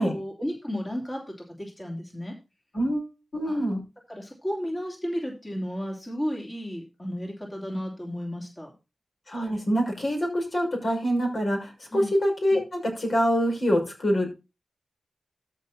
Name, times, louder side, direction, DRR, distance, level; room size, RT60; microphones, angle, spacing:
voice 1, 0.0-2.3 3.4-3.6 4.1-8.7 11.9-12.1, equal, 25° left, 0 dB, 3.0 m, -33 dB
voice 2, 2.7-3.8 9.3-14.4, equal, 60° left, 2 dB, 5.7 m, -25 dB
13.0 x 5.9 x 4.2 m, 0.28 s
cardioid pair, 60°, 0 cm